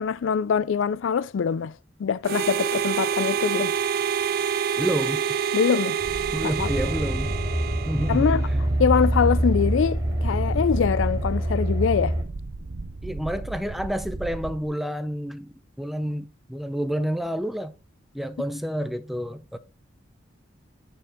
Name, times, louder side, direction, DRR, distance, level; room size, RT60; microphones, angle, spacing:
voice 1, 0.0-1.7 2.0-3.7 5.5-6.0 6.4-6.7 8.1-8.5 8.8-12.2, left 6 dB, 85° left, 0.4 m, -23 dB
Harmonica, 2.2-8.6, right 7 dB, 50° right, 0.3 m, -27 dB
voice 2, 4.8-5.2 6.3-7.3 7.9-8.6 13.0-17.7 18.1-19.6, equal, ahead, 0.5 m, -29 dB
sound 1, 6.0-14.7, right 2 dB, 85° right, 0.8 m, -36 dB
sound 2, 6.6-12.2, right 1 dB, 20° right, 3.5 m, -25 dB
10.0 x 4.8 x 3.5 m
head